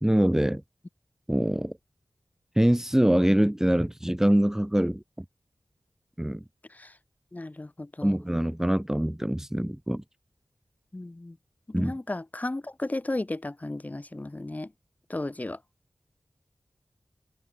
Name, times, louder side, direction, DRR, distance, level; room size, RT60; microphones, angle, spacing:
voice 1, 0.0-0.6 1.3-1.7 2.5-5.2 6.2-6.4 8.0-10.0 11.7-11.9, right 1 dB, 10° right, 1.6 m, -24 dB
voice 2, 7.3-8.2 10.9-11.4 11.7-14.7 15.1-15.6, left 2 dB, 25° left, 4.6 m, -34 dB
wide cardioid pair, 90°, 6 cm